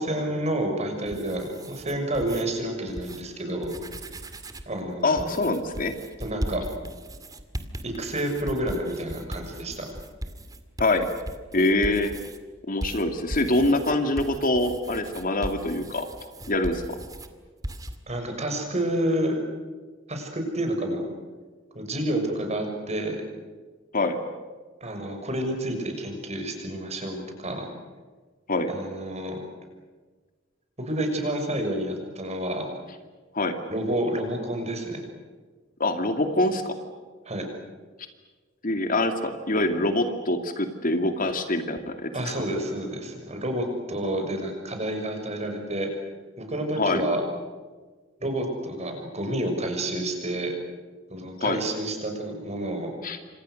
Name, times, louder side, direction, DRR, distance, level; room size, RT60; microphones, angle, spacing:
voice 1, 0.0-3.7 4.7-5.3 6.2-6.6 7.8-9.9 18.1-19.4 20.1-21.1 21.7-23.2 24.8-27.7 28.7-29.4 30.8-32.7 33.7-35.0 37.2-37.5 42.1-45.9 46.4-47.2 48.2-50.5 51.1-52.9, right 1 dB, 35° right, 4 dB, 6.5 m, -29 dB
sound 1, 0.9-2.4 2.9-3.2 3.6-4.7 5.2-12.4 12.8-17.3 17.6-18.0, right 1 dB, 20° right, 2.2 m, -38 dB
voice 2, 5.0-5.9 10.8-11.1 11.5-12.1 12.7-16.0 16.5-16.8 23.9-24.2 28.5-28.7 33.3-33.5 35.8-36.8 38.6-42.3 46.8-47.0 51.4-51.6 53.0-53.2, left 2 dB, 45° left, 6 dB, 2.5 m, -24 dB
29.5 x 26.5 x 6.6 m, 1.4 s
head